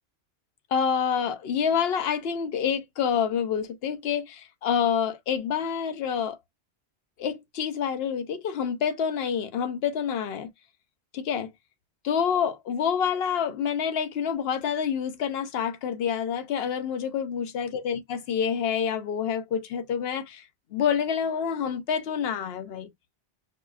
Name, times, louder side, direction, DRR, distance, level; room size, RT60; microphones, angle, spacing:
voice 1, 0.7-6.4 7.2-10.5 11.1-11.5 12.0-20.4 20.7-22.9, left 7 dB, 70° left, 0.8 m, -27 dB
4.8 x 2.3 x 2.4 m
omnidirectional pair, 1.1 m